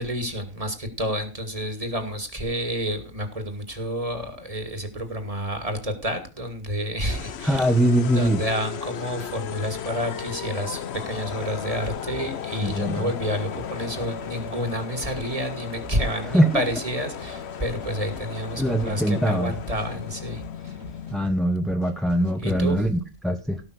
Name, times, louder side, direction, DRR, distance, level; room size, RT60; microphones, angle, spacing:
voice 1, 0.0-7.7 8.1-20.8 22.4-22.8, equal, 25° right, 2.5 m, -29 dB
sound 1, 7.1-21.3, left 8 dB, 60° left, 1.0 m, -35 dB
voice 2, 7.4-8.4 12.6-13.1 16.3-16.6 18.6-19.5 21.1-23.6, right 1 dB, ahead, 1.0 m, -22 dB
sound 2, 11.2-22.6, right 4 dB, 90° right, 3.4 m, -47 dB
17.5 x 6.0 x 6.4 m
omnidirectional pair, 1.4 m